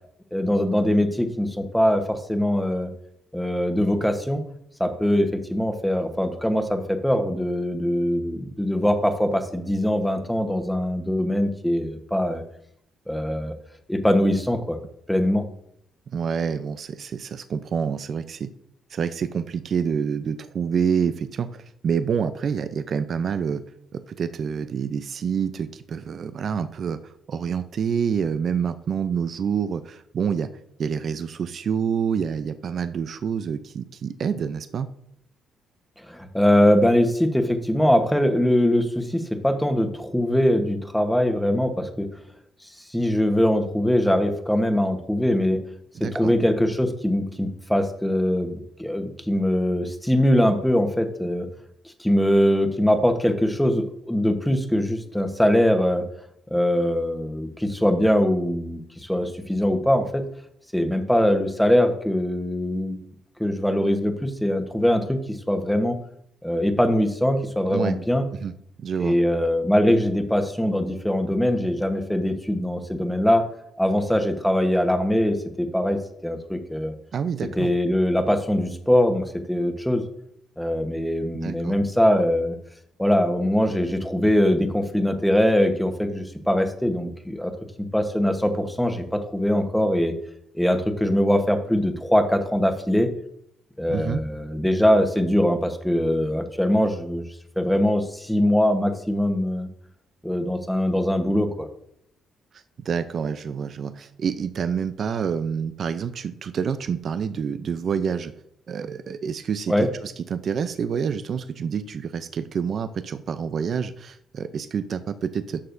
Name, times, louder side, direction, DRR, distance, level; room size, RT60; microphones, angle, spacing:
voice 1, 0.3-2.9 3.3-4.4 4.8-12.4 13.1-13.5 13.9-14.8 15.1-15.5 36.0-42.1 42.6-45.6 46.0-51.5 52.0-56.0 56.5-60.2 60.7-63.0 63.4-66.0 66.4-68.2 69.0-73.4 73.8-76.9 77.6-80.0 80.6-82.6 83.0-87.5 87.8-90.1 90.5-93.1 93.8-97.3 97.6-99.7 100.2-101.7 109.7-109.9, equal, 5° left, 6 dB, 1.2 m, -22 dB
voice 2, 16.1-18.5 18.9-23.6 23.9-30.5 30.8-34.9 45.9-46.3 67.7-67.9 68.4-68.5 68.8-69.1 77.1-77.7 81.4-81.7 93.9-94.2 102.8-108.3 108.7-109.7 110.0-115.6, right 7 dB, 55° right, 11 dB, 0.5 m, -27 dB
11.5 x 6.5 x 2.6 m, 0.72 s
cardioid pair, 90°, 0 cm